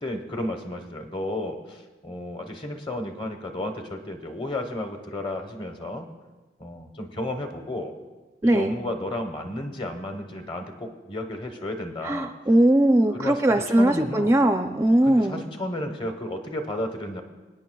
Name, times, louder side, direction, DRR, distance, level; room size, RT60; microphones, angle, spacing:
voice 1, 0.0-6.1 6.6-7.9 8.5-12.3 13.1-13.4 13.8-14.3 15.1-17.2, left 1 dB, 30° left, 5 dB, 1.0 m, -32 dB
voice 2, 8.4-8.7 12.0-15.4, right 1 dB, 15° right, 6 dB, 0.4 m, -20 dB
24.0 x 9.3 x 2.3 m, 1.2 s
head